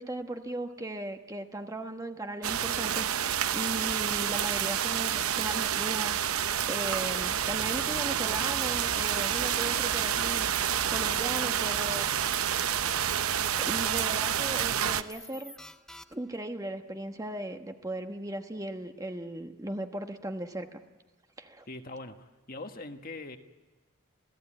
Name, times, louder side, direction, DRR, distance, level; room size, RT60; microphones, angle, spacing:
voice 1, 0.0-12.1 13.6-15.5 16.1-20.8 21.4-21.7, right 1 dB, 15° right, 6 dB, 1.1 m, -37 dB
sound 1, 2.4-15.0, right 9 dB, 80° right, 0.8 m, -29 dB
sound 2, 11.0-11.5 11.9-12.4 12.7-13.3 13.7-14.2 14.8-16.4, left 1 dB, 5° left, 0.8 m, -49 dB
voice 2, 21.7-23.4, left 2 dB, 40° left, 6 dB, 1.5 m, -42 dB
27.0 x 16.5 x 9.0 m, 1.2 s
head